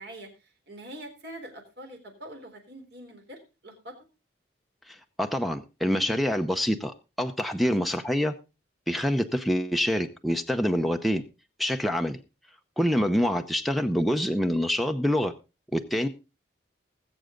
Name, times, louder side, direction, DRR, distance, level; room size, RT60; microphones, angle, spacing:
voice 1, 0.0-4.0 13.1-13.4, right 1 dB, 55° right, 3.8 m, -44 dB
voice 2, 4.9-8.3 8.9-11.2 11.6-12.2 12.8-15.3 15.7-16.1, equal, ahead, 0.7 m, -26 dB
19.5 x 7.8 x 3.8 m
head